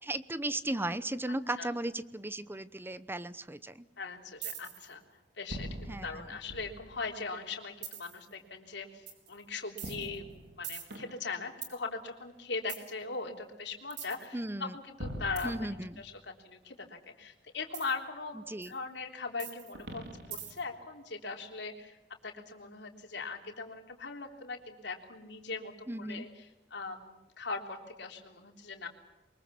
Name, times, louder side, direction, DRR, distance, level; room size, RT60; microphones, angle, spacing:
voice 1, 0.0-3.9 5.9-6.1 14.3-14.7 15.4-16.0 18.5-18.7 25.9-26.3, right 1 dB, 10° right, 15 dB, 0.9 m, -36 dB
voice 2, 4.0-5.0 5.4-10.3 10.6-20.0 20.3-21.9 22.2-28.9, left 4 dB, 70° left, 3 dB, 3.5 m, -40 dB
sound 1, 4.4-4.9 5.5-7.1 7.8-8.2 9.1-9.3 9.8-11.8 12.7-12.9 13.9-14.3 15.0-16.2 17.7-18.0 18.6-18.7 19.4-20.8, right 4 dB, 65° right, 4.4 m, -42 dB
23.5 x 22.0 x 7.1 m, 1.0 s
head